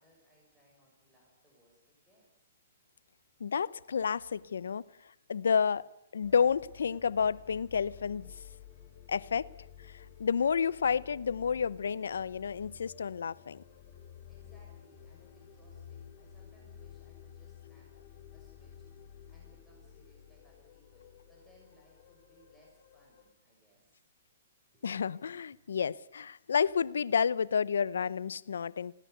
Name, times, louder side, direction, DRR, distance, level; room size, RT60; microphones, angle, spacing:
voice 1, 0.0-2.3 10.0-10.1 14.3-18.9 19.3-24.0 24.7-24.8 25.5-25.6, equal, 5° right, 6.5 m, -66 dB
voice 2, 3.4-4.8 5.3-5.9 6.1-8.3 9.1-9.5 9.9-13.6 24.8-28.9, left 6 dB, 80° left, 0.8 m, -30 dB
sound 1, 6.2-23.3, left 9 dB, 40° left, 3.7 m, -53 dB
20.5 x 17.5 x 8.1 m
hypercardioid pair, 145°, 0 cm